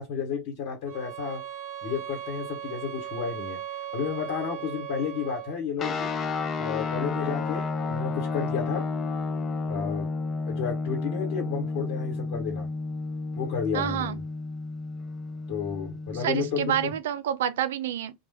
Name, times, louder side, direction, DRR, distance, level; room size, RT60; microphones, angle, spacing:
voice 1, 0.0-1.4 1.8-3.6 3.9-6.1 6.6-8.8 9.7-10.1 10.5-12.7 13.4-14.2 15.5-16.9, left 6 dB, 60° left, 1.0 m, -32 dB
sound 1, 0.9-5.6, right 10 dB, 50° right, 1.1 m, -38 dB
sound 2, 5.8-17.0, left 3 dB, 35° left, 0.5 m, -31 dB
voice 2, 13.7-14.2 16.2-18.1, right 10 dB, 75° right, 0.3 m, -28 dB
2.2 x 2.1 x 3.4 m
hypercardioid pair, 90°, 0 cm